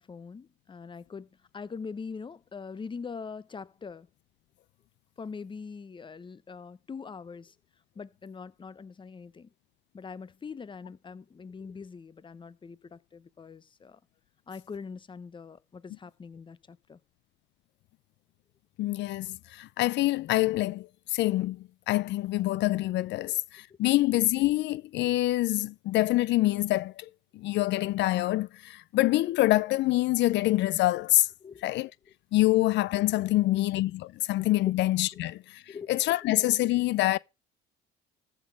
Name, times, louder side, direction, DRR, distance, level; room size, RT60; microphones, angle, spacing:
voice 1, 0.0-4.1 5.2-7.5 8.0-9.5 9.9-14.0 14.5-17.0 31.4-31.6 33.4-33.6 34.7-34.8 35.1-35.2 35.7-35.9 36.2-36.3, left 5 dB, 25° left, 0.8 m, -42 dB
voice 2, 18.8-31.3 31.6-31.9 32.3-37.2, left 17 dB, 65° left, 0.5 m, -26 dB
14.5 x 6.2 x 4.7 m
cardioid pair, 95°, 20 cm